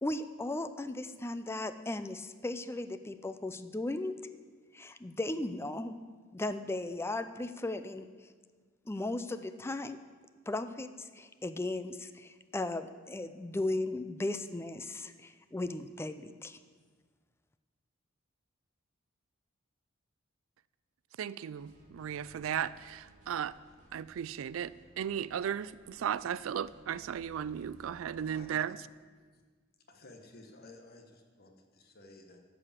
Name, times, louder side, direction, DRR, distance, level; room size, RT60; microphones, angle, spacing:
voice 1, 0.0-4.2 4.7-5.9 6.3-8.1 8.9-10.0 10.5-16.6, left 2 dB, 10° left, 11 dB, 0.4 m, -36 dB
voice 2, 21.2-23.6 23.9-28.8, right 9 dB, 75° right, 18 dB, 0.3 m, -36 dB
sound 1, 21.5-28.5, right 1 dB, 35° right, 2.2 m, -60 dB
voice 3, 28.2-28.6 29.3-29.4 29.8-32.4, left 2 dB, 50° left, 4 dB, 1.2 m, -54 dB
13.5 x 4.9 x 7.3 m, 1.5 s
head